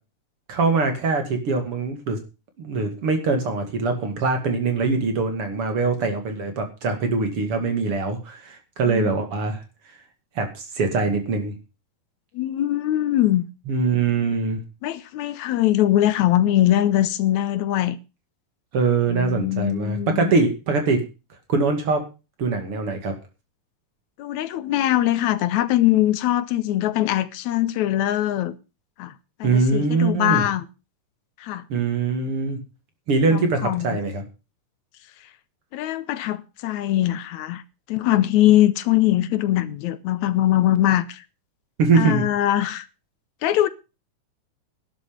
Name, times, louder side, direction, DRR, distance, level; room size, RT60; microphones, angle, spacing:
voice 1, 0.5-2.2 2.6-9.6 10.4-11.5 13.7-14.6 18.7-21.0 21.5-22.0 22.4-23.1 29.4-30.4 31.7-32.6 33.1-34.2 41.8-42.2, right 4 dB, 45° right, 2.9 m, -22 dB
voice 2, 12.3-13.4 14.8-18.0 19.1-20.3 24.2-28.6 29.0-29.1 29.4-30.6 31.4-31.6 33.3-33.9 35.7-37.6 37.9-41.2 42.0-42.9 43.4-43.7, left 13 dB, 75° left, 2.0 m, -21 dB
12.0 x 11.0 x 5.2 m
omnidirectional pair, 3.7 m